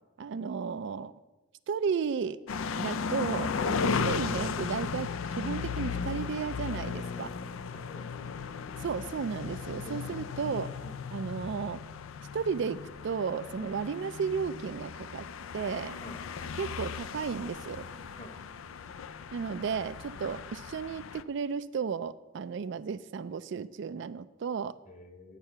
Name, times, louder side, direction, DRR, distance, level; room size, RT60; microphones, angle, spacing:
voice 1, 0.2-1.1 1.7-2.4 2.8-7.3 8.8-10.7 11.1-11.8 12.3-15.2 15.5-16.0 16.6-17.8 19.3-24.7, right 6 dB, 60° right, 14 dB, 0.4 m, -34 dB
sound 1, 2.5-21.2, left 5 dB, 80° left, 0.4 m, -36 dB
voice 2, 7.7-8.4 9.8-10.1 10.8-11.0 13.6-13.7 16.0-16.2 18.2-18.4 24.8-25.4, equal, 35° left, 6 dB, 1.1 m, -48 dB
9.0 x 5.6 x 7.7 m, 1.1 s
head